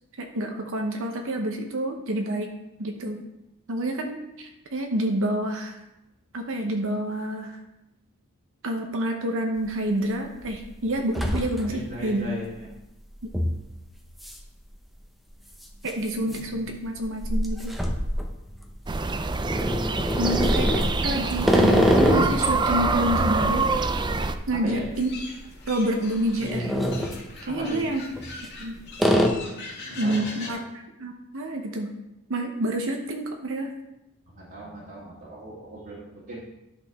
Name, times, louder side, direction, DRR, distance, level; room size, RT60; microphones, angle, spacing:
voice 1, 0.2-2.5 2.8-3.2 3.7-5.8 6.3-7.6 8.6-12.3 13.2-13.3 15.8-17.8 20.2-23.7 24.5-25.2 25.7-26.8 27.4-28.0 28.6-28.8 30.0-31.9 32.3-33.7, right 1 dB, 60° right, 3 dB, 0.8 m, -28 dB
sound 1, 9.6-9.7 10.2-10.6 10.9-11.9 12.3-12.4 13.3-13.6 14.2-14.4 14.7-14.8 15.7-18.8 19.4-22.5 22.9-25.2 25.5-25.7 26.2-27.2 28.1-28.6 29.0-29.3, equal, ahead, 0.7 m, -24 dB
voice 2, 11.7-12.7 16.2-16.6 24.6-24.8 27.5-27.8 29.9-30.6 34.3-36.4, right 1 dB, 45° right, -8 dB, 1.8 m, -38 dB
sound 2, 18.9-24.3, right 3 dB, 20° right, 0.4 m, -26 dB
sound 3, 24.9-30.5, left 3 dB, 50° left, 1.9 m, -42 dB
10.5 x 6.0 x 3.5 m, 0.91 s
head